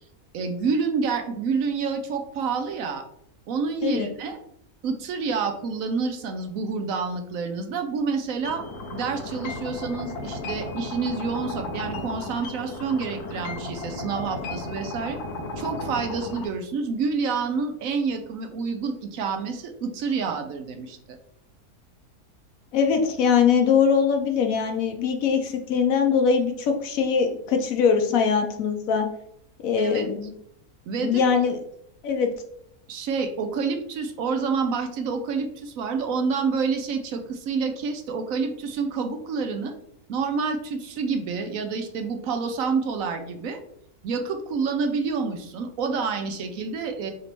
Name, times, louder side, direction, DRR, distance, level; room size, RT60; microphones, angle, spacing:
voice 1, 0.3-3.0 3.5-4.4 4.8-8.6 8.9-15.2 15.6-21.2 29.8-30.2 30.9-31.3 32.9-39.7 40.1-43.6 44.0-47.1, right 5 dB, 70° right, 6 dB, 1.0 m, -28 dB
sound 1, 8.4-16.4, left 2 dB, 85° left, 1.3 m, -34 dB
voice 2, 22.7-29.1 29.6-30.3 31.0-31.6 32.0-32.3, left 6 dB, 70° left, 5 dB, 1.0 m, -22 dB
5.0 x 3.3 x 2.9 m, 0.72 s
omnidirectional pair, 1.6 m